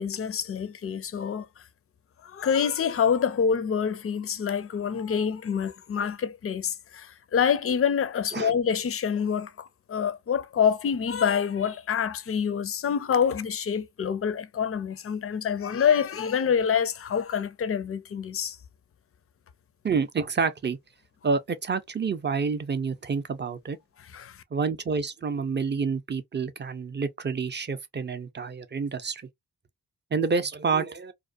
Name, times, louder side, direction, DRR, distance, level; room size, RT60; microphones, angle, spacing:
voice 1, 0.0-1.5 2.2-18.6 24.1-24.4, left 7 dB, 35° left, 0.4 m, -26 dB
voice 2, 19.8-20.8 21.2-23.8 24.5-29.2 30.1-31.1, right 5 dB, 25° right, 0.5 m, -28 dB
2.4 x 2.1 x 2.4 m
cardioid pair, 45°, 41 cm